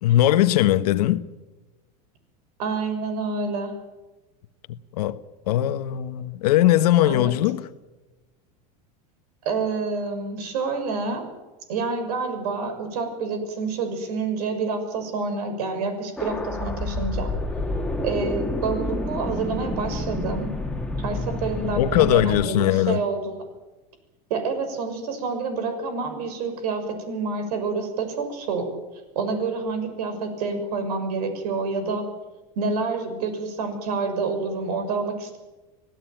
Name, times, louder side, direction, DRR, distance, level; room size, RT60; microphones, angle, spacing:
voice 1, 0.0-1.2 5.0-5.2 5.5-7.7 21.7-23.0, left 13 dB, 90° left, 1.3 m, -20 dB
voice 2, 2.6-3.7 7.1-7.3 9.4-11.3 11.7-17.3 18.0-20.5 21.0-23.4 24.3-28.7 29.1-32.0 32.6-35.4, right 4 dB, 85° right, 6.4 m, -28 dB
sound 1, 16.2-22.5, left 2 dB, 5° left, 2.3 m, -29 dB
25.5 x 16.5 x 9.0 m
supercardioid pair, 135°, 20 cm